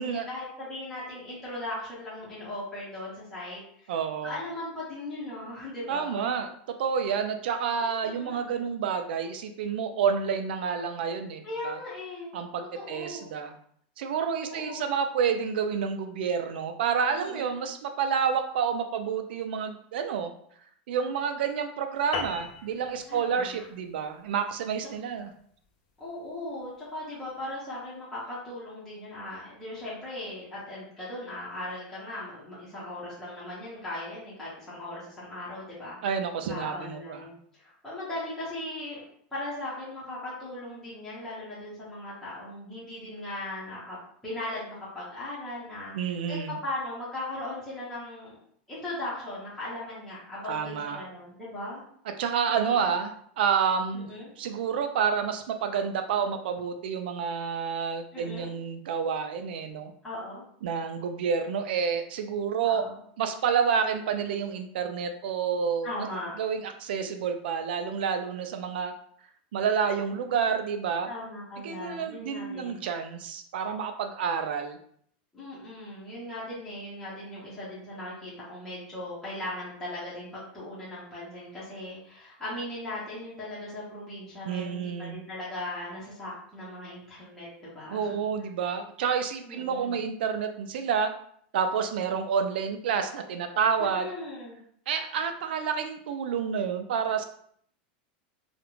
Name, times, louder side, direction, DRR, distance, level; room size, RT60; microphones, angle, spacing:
voice 1, 0.0-3.9 4.2-6.2 7.8-8.5 11.4-12.3 12.7-13.3 14.4-14.9 17.2-17.6 23.1-23.6 26.0-36.0 36.5-39.0 39.3-44.0 44.2-48.4 48.7-51.8 52.5-52.8 53.9-54.3 58.1-58.5 60.0-60.4 62.6-63.0 65.8-66.3 71.1-72.9 75.3-88.1 89.4-90.0 93.8-94.6, left 1 dB, 5° left, -10 dB, 0.7 m, -38 dB
voice 2, 3.9-4.3 5.9-6.5 6.8-11.8 12.3-13.6 14.0-20.3 20.9-25.3 36.0-37.3 45.9-46.6 50.4-51.0 52.2-54.1 54.4-59.9 60.6-62.8 63.2-65.9 66.4-68.9 69.5-71.1 71.6-74.8 84.4-85.2 87.9-91.1 91.5-94.1 94.9-97.2, right 6 dB, 85° right, 7 dB, 0.4 m, -29 dB
sound 1, 22.1-26.9, left 4 dB, 45° left, 0.4 m, -40 dB
2.4 x 2.1 x 3.0 m, 0.64 s
supercardioid pair, 180°, 5 cm